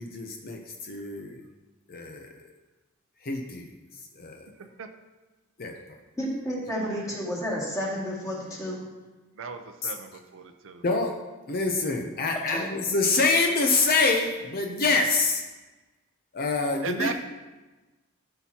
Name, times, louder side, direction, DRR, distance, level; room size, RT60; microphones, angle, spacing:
voice 1, 0.0-1.4 1.9-2.3 3.2-3.7 4.1-4.5 5.6-6.0 9.8-9.9 10.8-11.1 11.5-15.4 16.3-17.1, left 3 dB, 45° left, 3 dB, 0.7 m, -26 dB
voice 2, 6.2-8.8 12.5-12.6, equal, 15° left, -5 dB, 2.2 m, -31 dB
voice 3, 9.3-10.8 16.8-17.1, right 5 dB, 65° right, 7 dB, 0.6 m, -36 dB
12.5 x 5.8 x 2.9 m, 1.2 s
head